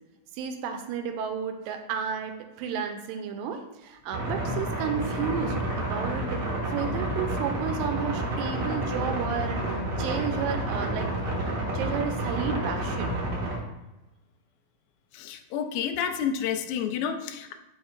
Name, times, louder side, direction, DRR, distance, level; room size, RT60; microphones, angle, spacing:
voice 1, 0.4-9.6 10.0-11.1 11.7-13.1, right 7 dB, 85° right, 6 dB, 2.4 m, -32 dB
sound 1, 4.1-13.6, right 1 dB, 50° right, 1.2 m, -30 dB
voice 2, 15.1-17.5, left 8 dB, 90° left, 7 dB, 2.4 m, -30 dB
8.0 x 6.1 x 2.5 m, 1.0 s
omnidirectional pair, 4.0 m